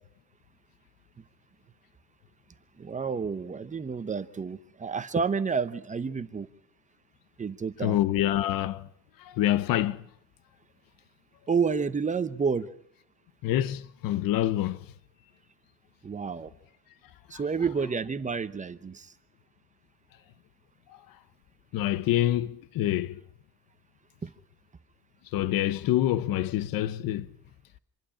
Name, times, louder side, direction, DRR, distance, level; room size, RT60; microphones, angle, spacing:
voice 1, 2.8-6.5 7.4-8.0 11.5-12.7 16.0-16.5 17.3-19.1 24.2-24.3, right 5 dB, 20° right, 0.9 m, -30 dB
voice 2, 7.8-8.9 9.2-10.0 13.4-14.9 21.7-23.2 25.3-27.3, left 13 dB, 75° left, 0.9 m, -26 dB
26.5 x 11.5 x 9.9 m
cardioid pair, 140°, 35 cm